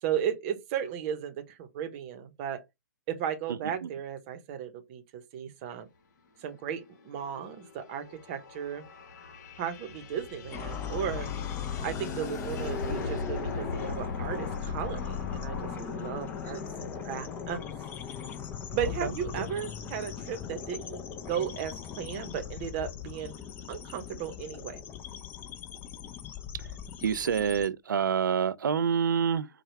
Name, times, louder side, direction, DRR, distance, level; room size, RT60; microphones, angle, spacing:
voice 1, 0.0-2.6 3.1-5.9 6.4-8.8 9.6-11.3 11.8-17.6 18.7-23.3 23.7-24.8, right 9 dB, 35° right, 0.8 m, -35 dB
sound 1, 6.4-19.8, left 3 dB, 60° left, 1.4 m, -40 dB
sound 2, 10.5-27.7, left 8 dB, 20° left, 0.6 m, -39 dB
voice 2, 27.0-29.5, right 7 dB, 80° right, 0.4 m, -27 dB
4.7 x 2.3 x 3.1 m
hypercardioid pair, 135°, 10 cm